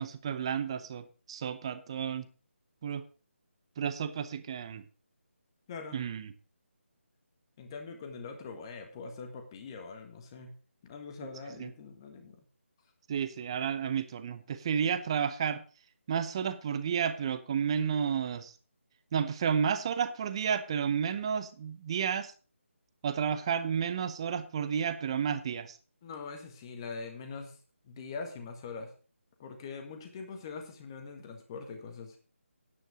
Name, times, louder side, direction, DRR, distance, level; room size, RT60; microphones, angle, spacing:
voice 1, 0.0-2.3 2.8-3.0 3.8-4.8 5.9-6.3 11.6-11.7 13.1-15.6 16.1-18.5 19.1-22.3 23.0-25.8, right 7 dB, 25° right, 12 dB, 0.8 m, -31 dB
voice 2, 7.6-10.6 10.8-12.4 26.0-27.6 27.8-28.9 29.4-32.2, left 4 dB, 20° left, 5 dB, 1.7 m, -43 dB
9.7 x 9.1 x 4.9 m, 0.36 s
figure-of-eight pair, 165°, 7 cm